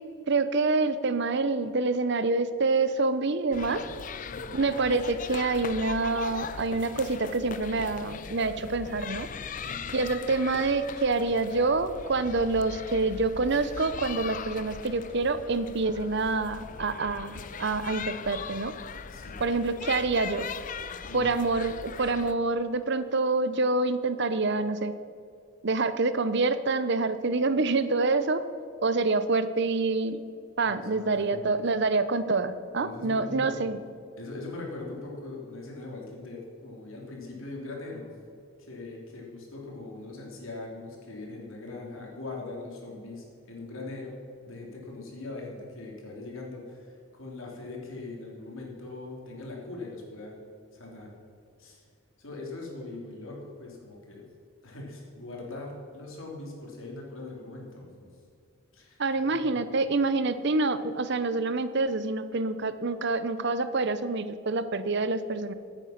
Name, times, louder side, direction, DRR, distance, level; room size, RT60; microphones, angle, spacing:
voice 1, 0.3-3.8 4.5-9.3 9.9-18.7 19.4-20.5 21.1-24.9 25.6-28.4 28.8-30.2 30.6-33.8 59.0-65.5, right 3 dB, 50° right, 12 dB, 0.7 m, -27 dB
sound 1, 3.5-22.3, left 6 dB, 35° left, 0.5 m, -40 dB
voice 2, 4.3-4.7 9.6-10.1 19.1-19.4 21.1-21.4 30.6-31.4 32.8-33.5 34.2-38.1 38.6-44.2 44.5-50.4 50.7-51.1 51.6-51.8 52.2-54.3 54.6-58.1 58.7-59.0 59.3-59.9, left 2 dB, 70° left, -1 dB, 3.3 m, -41 dB
15.5 x 8.9 x 5.9 m, 2.4 s
head